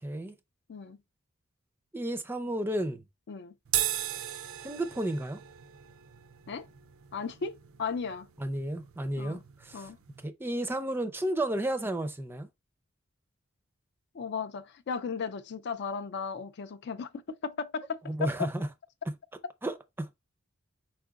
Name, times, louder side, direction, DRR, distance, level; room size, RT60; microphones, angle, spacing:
voice 1, 0.0-0.3 1.9-3.0 4.6-5.4 8.4-9.9 10.2-12.5 18.1-18.7 19.6-20.1, right 1 dB, 10° right, 0.5 m, -32 dB
sound 1, 3.6-10.2, right 12 dB, 75° right, 0.4 m, -37 dB
voice 2, 7.1-8.3 9.2-9.4 9.7-10.0 14.1-18.3, left 5 dB, 55° left, 0.4 m, -36 dB
4.8 x 4.4 x 2.3 m
head